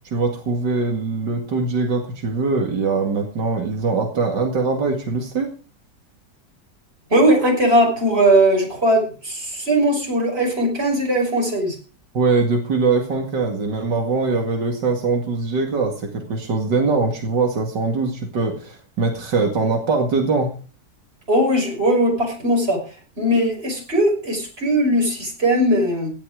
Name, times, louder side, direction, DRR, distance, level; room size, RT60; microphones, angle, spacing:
voice 1, 0.1-5.5 12.1-20.5, right 4 dB, 85° right, 3 dB, 2.8 m, -22 dB
voice 2, 7.1-11.8 21.3-26.1, right 1 dB, 35° right, 0 dB, 6.2 m, -19 dB
17.0 x 11.0 x 4.9 m, 0.38 s
omnidirectional pair, 1.8 m